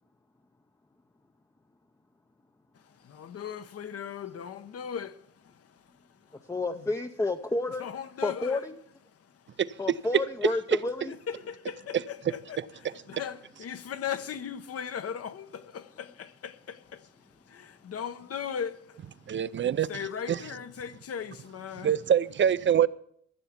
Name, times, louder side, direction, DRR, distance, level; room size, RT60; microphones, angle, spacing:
voice 1, 2.7-6.9 7.8-8.6 9.1-9.6 11.1-19.4 19.9-21.9, left 8 dB, 50° left, 0.9 m, -39 dB
voice 2, 6.5-7.9 8.2-8.8 9.8-11.1, left 2 dB, 10° left, 0.6 m, -30 dB
voice 3, 19.3-19.9 20.3-20.4 21.8-22.9, right 9 dB, 40° right, 0.5 m, -24 dB
15.0 x 6.9 x 7.2 m
cardioid pair, 90°, 30 cm